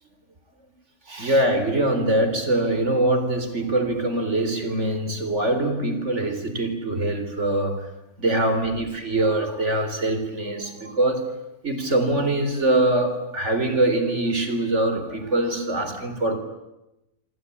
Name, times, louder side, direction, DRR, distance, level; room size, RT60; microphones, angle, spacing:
voice 1, 1.1-7.9 8.2-11.3 11.6-16.4, right 1 dB, 50° right, 9 dB, 4.2 m, -23 dB
27.0 x 26.5 x 8.5 m, 0.92 s
omnidirectional pair, 1.5 m